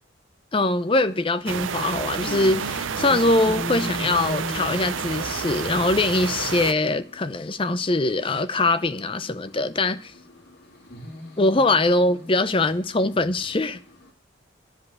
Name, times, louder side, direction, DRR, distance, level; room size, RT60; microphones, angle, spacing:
voice 1, 0.5-10.1 11.4-13.8, left 2 dB, 25° left, 0.6 m, -22 dB
sound 1, 0.6-14.1, left 1 dB, 50° left, 2.6 m, -41 dB
sound 2, 1.5-6.7, right 6 dB, 75° right, 0.5 m, -30 dB
10.5 x 5.5 x 8.0 m
head